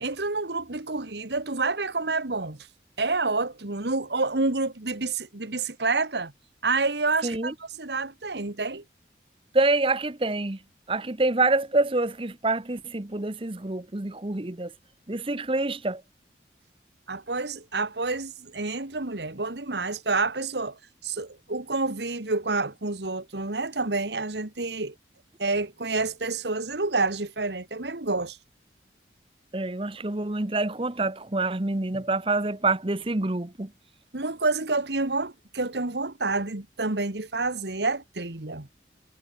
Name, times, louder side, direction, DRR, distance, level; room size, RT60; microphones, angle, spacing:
voice 1, 0.0-2.7 3.0-6.3 6.6-8.8 17.1-24.9 25.4-28.4 34.1-38.7, right 3 dB, 75° right, 1.9 m, -28 dB
voice 2, 7.2-7.5 9.5-10.6 10.9-14.7 15.1-16.0 29.5-33.7, right 2 dB, 30° right, 1.0 m, -26 dB
head